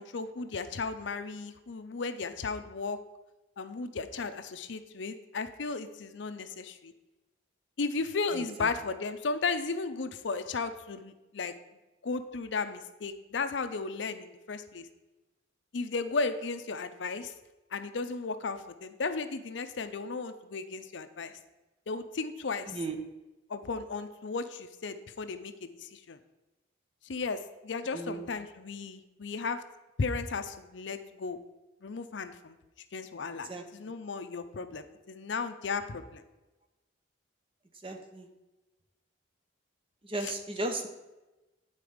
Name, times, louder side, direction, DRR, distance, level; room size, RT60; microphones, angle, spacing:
voice 1, 0.0-3.0 3.6-6.9 7.8-11.5 12.0-14.9 15.7-17.3 17.7-21.3 21.9-22.8 23.5-26.2 27.0-29.6 30.0-31.4 31.8-32.6 32.9-36.2 40.2-40.3, left 4 dB, 70° left, 10 dB, 0.6 m, -35 dB
voice 2, 8.3-8.7 22.7-23.0 27.9-28.2 33.5-33.6 37.8-38.3 40.0-40.9, right 2 dB, 30° right, 4 dB, 0.8 m, -35 dB
9.5 x 4.1 x 5.0 m, 1.1 s
head